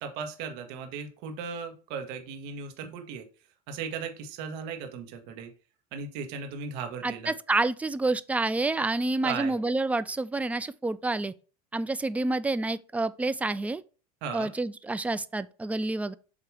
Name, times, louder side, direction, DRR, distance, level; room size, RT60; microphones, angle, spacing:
voice 1, 0.0-3.2 3.7-5.5 5.9-7.3 9.2-9.6 14.2-14.5, right 6 dB, 60° right, 1.3 m, -36 dB
voice 2, 7.0-11.3 11.7-13.8 14.3-16.1, right 2 dB, 5° right, 0.3 m, -28 dB
7.4 x 2.9 x 4.8 m
hypercardioid pair, 85°, 20 cm